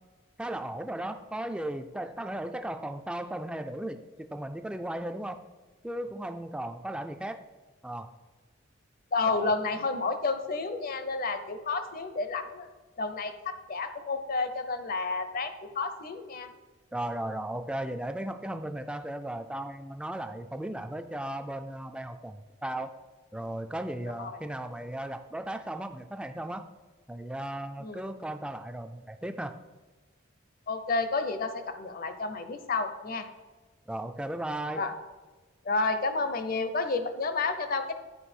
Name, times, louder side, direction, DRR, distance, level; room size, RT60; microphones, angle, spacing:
voice 1, 0.4-5.4 5.8-7.4 7.8-8.1 9.3-9.5 16.9-22.9 23.3-26.6 27.1-29.5 33.9-34.8, right 1 dB, 5° right, 8 dB, 0.3 m, -36 dB
voice 2, 9.1-12.7 13.0-16.5 24.2-24.4 27.8-28.0 30.7-33.3 34.8-34.9 35.6-37.9, left 3 dB, 45° left, 9 dB, 0.6 m, -30 dB
10.0 x 4.7 x 4.3 m, 1.3 s
head